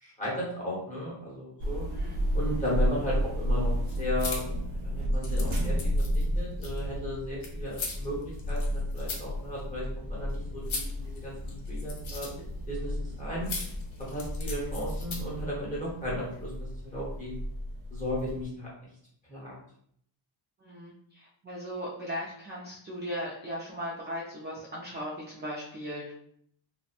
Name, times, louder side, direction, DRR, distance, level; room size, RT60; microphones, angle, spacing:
voice 1, 0.0-1.8 2.3-3.7 4.0-4.5 4.8-12.3 12.7-13.5 14.1-17.3 17.9-18.7 19.3-19.5, left 1 dB, 15° left, -6 dB, 0.9 m, -35 dB
sound 1, 1.6-18.4, equal, 80° right, 0.6 m, -32 dB
sound 2, 3.8-15.4, left 3 dB, 80° left, 0.7 m, -39 dB
voice 2, 20.6-26.1, equal, 25° right, -5 dB, 0.3 m, -38 dB
2.8 x 2.1 x 2.4 m, 0.67 s
wide cardioid pair, 175°, 46 cm